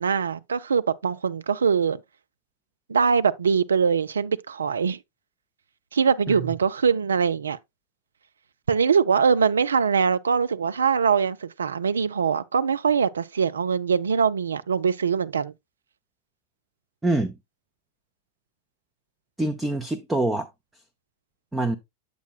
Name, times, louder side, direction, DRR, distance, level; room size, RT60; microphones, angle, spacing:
voice 1, 0.0-2.0 2.9-5.0 5.9-7.6 8.7-15.5, right 6 dB, 70° right, 0.4 m, -22 dB
voice 2, 17.0-17.4 19.4-20.5 21.5-21.8, right 2 dB, 10° right, 0.6 m, -25 dB
8.2 x 7.6 x 2.3 m
figure-of-eight pair, 90°, 0 cm